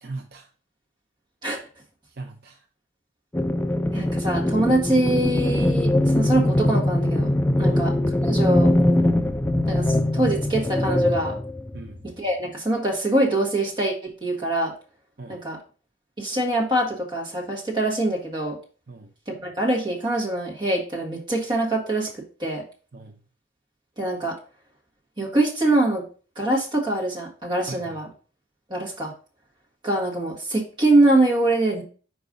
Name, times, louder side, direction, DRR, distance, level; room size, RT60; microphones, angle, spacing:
voice 1, 0.0-0.5 2.1-2.6 7.6-7.9 11.7-12.0 15.2-15.4 18.9-19.1 22.9-23.2 27.7-28.0, right 3 dB, 55° right, 3 dB, 0.6 m, -39 dB
sound 1, 3.3-12.1, left 1 dB, 10° left, 0.3 m, -22 dB
voice 2, 3.9-7.3 7.6-7.9 8.2-8.7 9.7-9.9 10.1-11.4 12.0-14.7 15.3-15.6 16.2-18.6 19.3-22.1 22.4-22.6 24.0-24.4 25.2-26.0 26.4-28.1 28.7-29.1 29.8-31.8, right 1 dB, 25° right, -2 dB, 1.7 m, -23 dB
5.3 x 4.7 x 4.0 m, 0.39 s
head